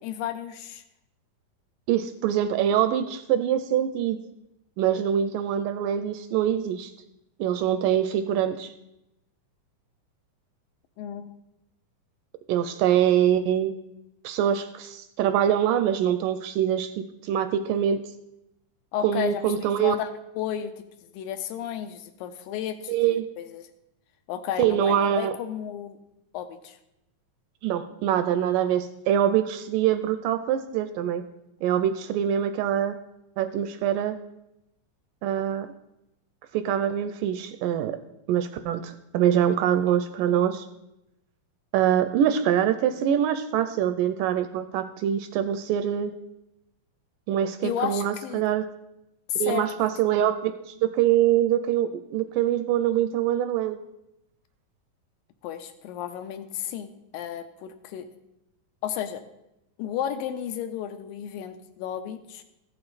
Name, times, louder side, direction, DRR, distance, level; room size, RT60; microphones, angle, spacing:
voice 1, 0.0-0.8 11.0-11.3 18.9-20.1 20.4-20.7 21.1-23.7 24.3-26.0 26.3-26.8 47.6-48.4 49.3-49.7 55.4-58.1 58.8-59.2 59.8-62.4, left 10 dB, 80° left, 8 dB, 2.3 m, -33 dB
voice 2, 1.9-4.2 4.8-6.9 7.4-8.7 12.5-13.7 14.2-18.0 19.0-20.0 22.9-23.3 24.6-25.3 27.6-31.2 31.6-33.0 33.4-34.2 35.2-35.7 36.5-38.0 38.3-40.7 41.7-46.1 47.3-48.6 49.4-53.8, right 10 dB, 80° right, 10 dB, 2.0 m, -24 dB
15.0 x 6.8 x 4.0 m, 0.86 s
omnidirectional pair, 4.1 m